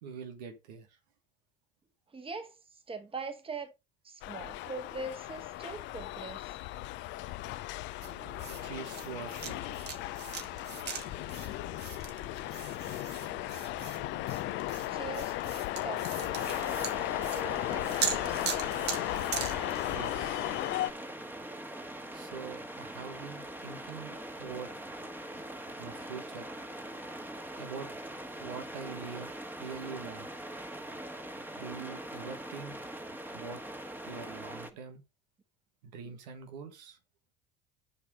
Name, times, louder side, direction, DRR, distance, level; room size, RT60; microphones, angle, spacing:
voice 1, 0.0-1.0 8.6-9.8 19.9-20.7 22.1-24.7 25.8-26.5 27.6-27.9 28.4-30.3 31.5-32.7 33.3-33.6 34.0-35.0 35.8-37.0, right 6 dB, 80° right, 1.5 m, -44 dB
voice 2, 2.1-2.5 2.9-3.7 4.0-6.6 14.9-16.4 17.2-18.5 31.3-31.4, right 3 dB, 25° right, 1.9 m, -42 dB
sound 1, 4.2-20.9, left 16 dB, 60° left, 0.6 m, -36 dB
sound 2, 8.0-20.1, right 7 dB, 55° right, 2.0 m, -41 dB
sound 3, 16.4-34.7, right 1 dB, 10° right, 1.6 m, -42 dB
6.6 x 5.7 x 5.1 m
hypercardioid pair, 70°, 21 cm